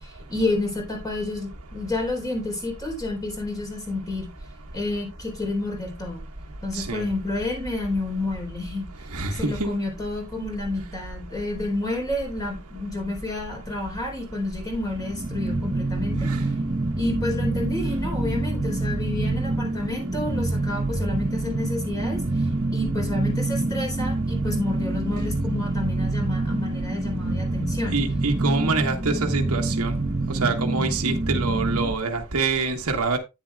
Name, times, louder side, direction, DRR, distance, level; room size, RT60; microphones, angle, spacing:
voice 1, 0.3-4.3 4.7-6.2 6.6-8.9 9.4-16.3 17.0-22.2 22.7-28.0, left 2 dB, 15° left, 3.8 m, -29 dB
voice 2, 9.1-9.7 16.3-16.4 27.9-30.0 30.3-33.2, right 3 dB, 70° right, 1.3 m, -26 dB
sound 1, 14.9-31.9, right 2 dB, 30° right, 0.8 m, -26 dB
10.5 x 9.5 x 2.3 m
head